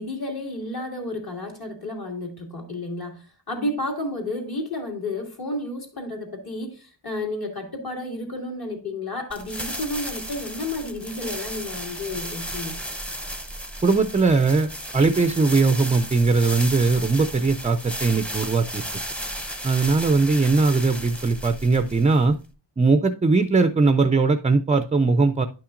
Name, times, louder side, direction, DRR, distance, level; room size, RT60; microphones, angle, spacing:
voice 1, 0.0-12.8, left 2 dB, 55° left, 2.4 m, -31 dB
sound 1, 9.3-22.4, equal, 5° left, 0.7 m, -34 dB
voice 2, 13.8-18.8 19.6-22.4 22.8-25.5, right 3 dB, 20° right, 0.3 m, -20 dB
10.5 x 5.8 x 2.5 m
wide cardioid pair, 85°, 44 cm